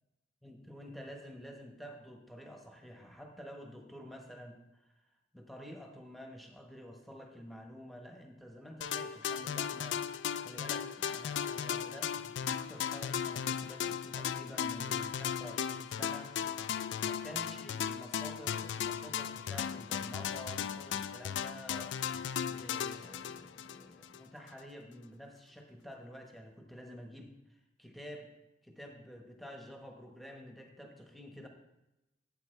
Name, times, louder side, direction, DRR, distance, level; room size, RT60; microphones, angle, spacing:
voice 1, 0.4-4.9 5.3-16.4 17.0-28.3 28.6-31.5, equal, ahead, 2 dB, 1.1 m, -49 dB
sound 1, 8.8-24.2, left 8 dB, 75° left, 0.4 m, -36 dB
11.5 x 8.3 x 3.3 m, 0.93 s
head